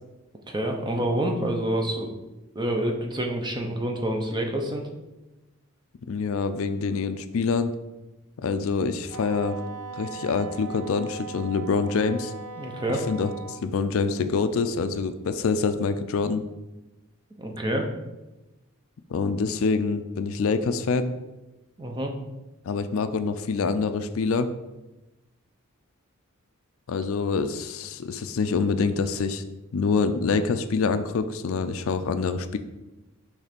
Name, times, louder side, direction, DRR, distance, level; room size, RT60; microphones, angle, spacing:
voice 1, 0.5-2.1 2.5-4.8 12.6-13.1 17.4-17.9 21.8-22.1, right 1 dB, 20° right, 2 dB, 0.8 m, -27 dB
voice 2, 6.1-7.7 8.4-9.6 10.0-12.3 13.1-16.4 19.1-21.1 22.7-24.5 26.9-29.4 29.7-32.6, left 4 dB, 65° left, 11 dB, 0.4 m, -26 dB
Wind instrument woodwind instrument, 9.1-13.6, right 4 dB, 80° right, 0.5 m, -39 dB
6.4 x 3.3 x 5.2 m, 1.0 s
head